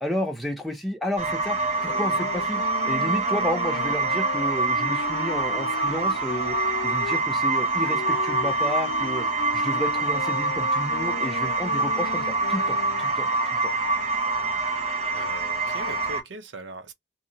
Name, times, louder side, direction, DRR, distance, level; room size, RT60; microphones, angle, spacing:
voice 1, 0.0-6.6 6.8-9.3 9.5-13.7, equal, ahead, 0.4 m, -31 dB
sound 1, 1.2-16.2, right 3 dB, 35° right, 0.7 m, -25 dB
sound 2, 1.8-7.3 7.9-13.1, left 6 dB, 80° left, 0.3 m, -38 dB
voice 2, 15.1-16.9, right 1 dB, 75° right, 0.6 m, -40 dB
2.7 x 2.3 x 2.7 m
head